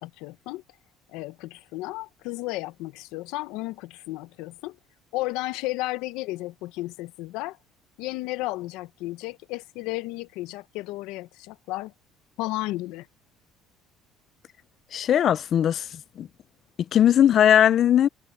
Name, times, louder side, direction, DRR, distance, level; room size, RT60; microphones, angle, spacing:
voice 1, 0.0-0.6 1.1-4.8 5.1-7.6 8.0-11.9 12.4-13.1, left 19 dB, 85° left, 0.8 m, -33 dB
voice 2, 14.9-16.3 16.9-18.1, left 10 dB, 45° left, 0.4 m, -19 dB
cardioid pair, 135°, 0 cm